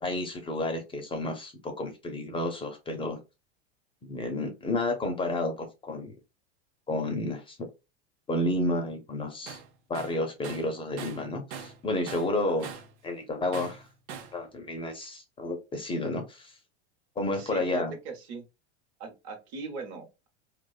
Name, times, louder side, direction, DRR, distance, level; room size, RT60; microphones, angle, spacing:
voice 1, 0.0-3.2 4.0-6.1 6.9-7.6 8.3-9.6 9.9-12.7 13.0-13.8 14.3-16.5 17.2-17.9, left 2 dB, 15° left, 4 dB, 0.4 m, -31 dB
Tools, 9.5-9.7 9.9-11.8 12.1-13.0 13.5-14.4, right 6 dB, 85° right, 0.6 m, -41 dB
voice 2, 17.4-18.4 19.0-20.3, right 4 dB, 45° right, 5 dB, 0.8 m, -40 dB
2.5 x 2.1 x 2.3 m, 0.26 s
hypercardioid pair, 115°, 34 cm